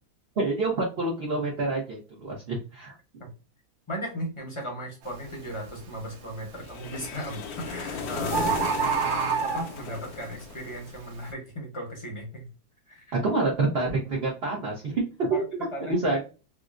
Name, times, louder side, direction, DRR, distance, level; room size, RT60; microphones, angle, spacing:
voice 1, 0.4-2.9 13.1-15.4 15.8-16.2, right 3 dB, 50° right, -2 dB, 0.7 m, -27 dB
voice 2, 3.9-12.5 12.9-13.2 13.9-14.0 15.3-16.2, equal, 25° left, -1 dB, 0.7 m, -37 dB
Bird, 5.0-5.3 5.8-6.3 7.3-7.4 7.7-7.8 8.0-8.1 8.3-10.0 10.6-10.7, right 6 dB, 80° right, 1.5 m, -27 dB
sound 1, 6.7-10.9, left 5 dB, 70° left, 0.9 m, -35 dB
3.6 x 2.1 x 2.4 m, 0.33 s
omnidirectional pair, 2.1 m